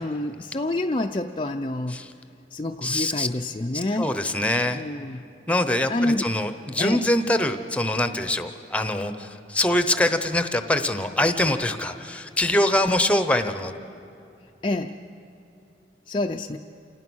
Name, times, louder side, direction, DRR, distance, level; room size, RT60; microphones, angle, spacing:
voice 1, 0.0-2.0 2.5-4.1 4.7-5.2 5.9-6.3 6.8-7.0 14.6-14.9 16.1-16.6, left 2 dB, 30° left, 3 dB, 0.5 m, -27 dB
voice 2, 2.8-3.3 3.7-4.8 5.5-13.7, left 1 dB, 5° left, 9 dB, 0.9 m, -24 dB
28.0 x 18.5 x 6.2 m, 2.7 s
head